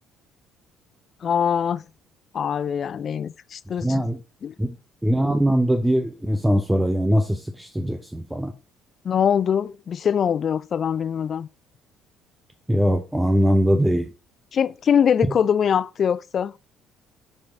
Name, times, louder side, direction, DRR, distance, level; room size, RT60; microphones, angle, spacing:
voice 1, 1.2-1.8 2.3-4.1 4.4-4.5 9.0-11.5 14.5-16.5, left 8 dB, 45° left, 0.3 m, -23 dB
voice 2, 3.8-4.2 4.6-4.7 5.0-8.5 12.7-14.1, equal, 5° right, 0.7 m, -21 dB
7.0 x 4.8 x 3.6 m
figure-of-eight pair, 50°, 0 cm